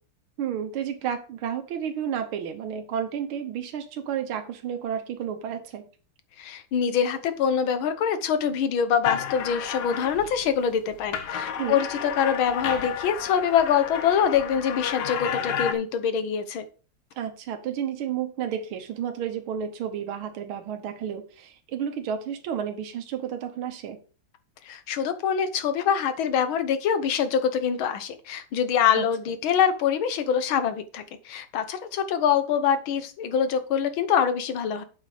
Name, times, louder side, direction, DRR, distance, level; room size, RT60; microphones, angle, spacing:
voice 1, 0.4-5.8 11.6-11.8 17.2-24.0 29.0-29.1, right 8 dB, 80° right, 7 dB, 1.9 m, -31 dB
voice 2, 6.4-16.6 24.7-34.8, left 8 dB, 75° left, 10 dB, 1.8 m, -24 dB
sound 1, 9.0-10.5 10.9-15.7, left 8 dB, 60° left, 1.3 m, -31 dB
8.0 x 5.7 x 4.9 m, 0.37 s
omnidirectional pair, 2.3 m